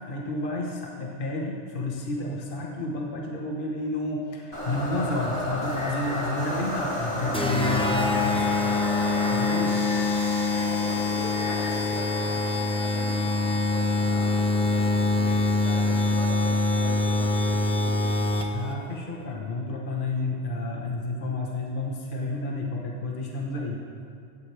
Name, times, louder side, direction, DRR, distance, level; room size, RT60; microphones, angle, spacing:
voice 1, 0.1-8.7 9.2-9.8 18.5-23.8, left 2 dB, 50° left, -1 dB, 1.4 m, -31 dB
sound 1, 4.5-13.5, left 1 dB, 25° left, 3.1 m, -33 dB
sound 2, 7.3-18.7, left 2 dB, 5° left, 0.9 m, -25 dB
voice 2, 10.5-18.1, left 1 dB, 80° left, -2 dB, 1.9 m, -41 dB
17.0 x 13.5 x 3.4 m, 2.4 s
omnidirectional pair, 1.2 m